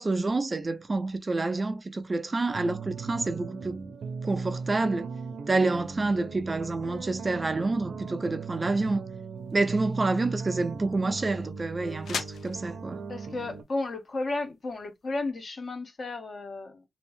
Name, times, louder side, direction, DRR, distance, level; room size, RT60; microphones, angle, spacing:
voice 1, 0.0-3.8 4.2-5.1 5.5-9.0 9.5-13.0, right 3 dB, 25° right, 0.3 m, -28 dB
sound 1, 2.5-13.6, right 5 dB, 70° right, 0.6 m, -38 dB
sound 2, 9.4-15.3, left 6 dB, 65° left, 0.4 m, -43 dB
voice 2, 13.1-16.8, left 2 dB, 40° left, 0.9 m, -33 dB
3.1 x 2.6 x 3.2 m
wide cardioid pair, 145°, 0 cm